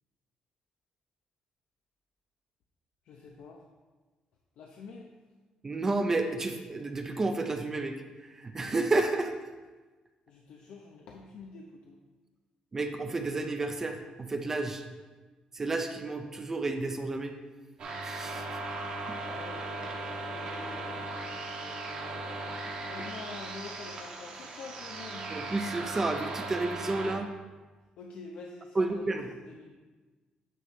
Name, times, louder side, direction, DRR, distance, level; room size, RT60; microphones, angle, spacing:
voice 1, 3.0-3.6 4.6-5.1 10.3-12.0 19.3-22.2 22.9-25.4 28.0-29.0 29.3-29.7, left 4 dB, 65° left, 0 dB, 0.7 m, -47 dB
voice 2, 5.6-8.0 8.3-9.3 12.7-14.8 15.5-17.4 18.0-18.4 19.1-19.2 25.3-27.3 28.8-29.3, right 2 dB, 20° right, 5 dB, 0.4 m, -31 dB
sound 1, 17.8-27.1, right 2 dB, 45° right, 1.0 m, -38 dB
9.2 x 3.1 x 5.7 m, 1.3 s
cardioid pair, 180°, 2 cm